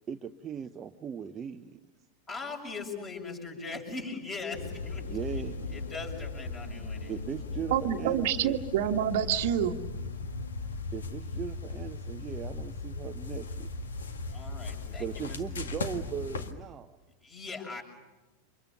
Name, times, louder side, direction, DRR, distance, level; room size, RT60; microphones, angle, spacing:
voice 1, 0.1-1.8 5.0-5.8 7.1-8.6 10.9-13.7 15.0-17.0, right 7 dB, 25° right, 7 dB, 0.8 m, -38 dB
voice 2, 2.3-5.1 5.3-5.4 5.7-7.1 14.2-15.4 17.2-17.8, left 4 dB, 25° left, 2 dB, 6.6 m, -40 dB
sound 1, 4.5-16.5, left 3 dB, 65° left, 1.8 m, -38 dB
voice 3, 7.7-9.8, right 10 dB, 50° right, 6 dB, 1.4 m, -27 dB
29.0 x 26.0 x 7.0 m, 1.1 s
figure-of-eight pair, 90°, 0 cm